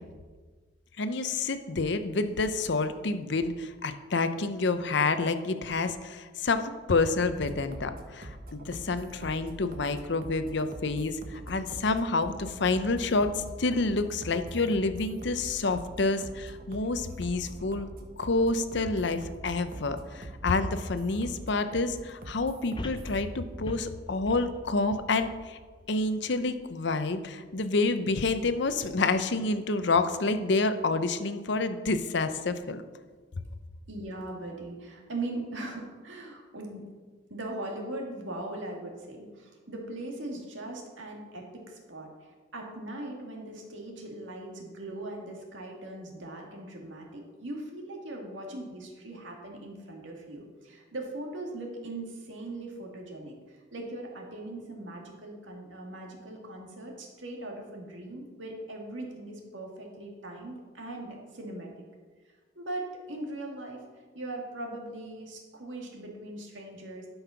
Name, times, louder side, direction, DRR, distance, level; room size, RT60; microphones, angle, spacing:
voice 1, 1.0-17.9 18.2-25.6 25.9-32.8, left 3 dB, 65° left, 10 dB, 0.7 m, -28 dB
sound 1, 7.2-23.2, right 1 dB, 50° right, 1.1 m, -43 dB
sound 2, 22.8-26.1 26.6-26.7, left 1 dB, 25° left, 0.6 m, -41 dB
voice 2, 33.9-36.8 37.3-61.8 62.6-63.8 64.1-67.1, right 2 dB, 75° right, 0 dB, 2.2 m, -40 dB
12.0 x 5.6 x 5.7 m, 1.4 s
head